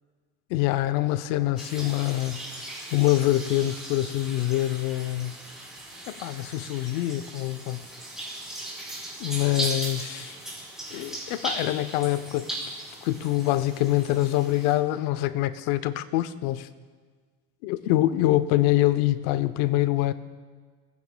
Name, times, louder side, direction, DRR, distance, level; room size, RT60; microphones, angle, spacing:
voice 1, 0.5-2.6 2.9-5.4 6.1-7.9 9.2-10.4 10.9-12.6 13.0-16.7 17.6-20.1, left 15 dB, 80° left, 14 dB, 0.7 m, -25 dB
sound 1, 1.6-14.7, right 1 dB, ahead, 3.6 m, -38 dB
20.0 x 9.6 x 2.2 m, 1.5 s
cardioid pair, 130°, 35 cm